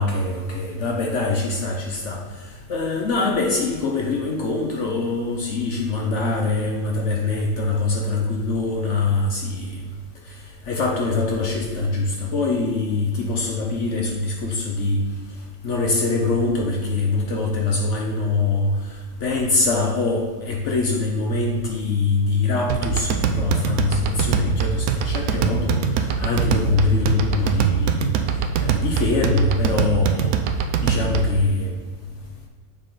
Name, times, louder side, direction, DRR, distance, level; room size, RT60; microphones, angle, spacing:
voice 1, 0.0-9.8 10.3-10.4 10.7-15.0 15.6-18.7 19.2-28.1 28.6-30.3 30.8-31.7, left 3 dB, 65° left, 0 dB, 0.7 m, -23 dB
sound 1, 22.7-31.4, right 7 dB, 85° right, 0.7 m, -23 dB
6.7 x 4.8 x 3.9 m, 1.5 s
omnidirectional pair, 2.1 m